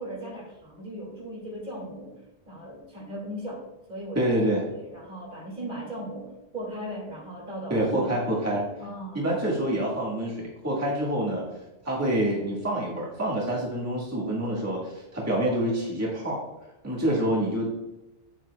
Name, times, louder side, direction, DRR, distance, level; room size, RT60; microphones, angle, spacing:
voice 1, 0.0-2.2 2.5-8.1 8.5-9.6, right 1 dB, 45° right, -2 dB, 2.6 m, -38 dB
voice 2, 4.1-4.6 7.7-8.6 9.1-11.4 11.8-16.4 16.8-17.8, right 1 dB, 15° right, -5 dB, 1.7 m, -27 dB
8.9 x 7.7 x 2.3 m, 0.96 s
omnidirectional pair, 1.2 m